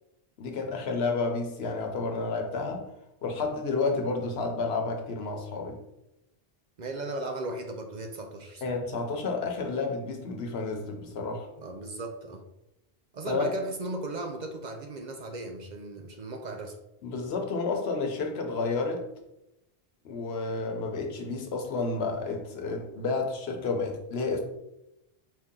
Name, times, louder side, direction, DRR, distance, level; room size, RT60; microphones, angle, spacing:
voice 1, 0.4-2.9 3.2-5.8 8.6-11.5 13.3-13.5 17.0-19.0 20.0-24.4, left 3 dB, 80° left, 3 dB, 1.0 m, -30 dB
voice 2, 6.8-8.8 11.6-12.4 13.1-16.8, right 2 dB, 55° right, 3 dB, 0.6 m, -36 dB
4.6 x 2.7 x 3.7 m, 0.88 s
omnidirectional pair, 1.0 m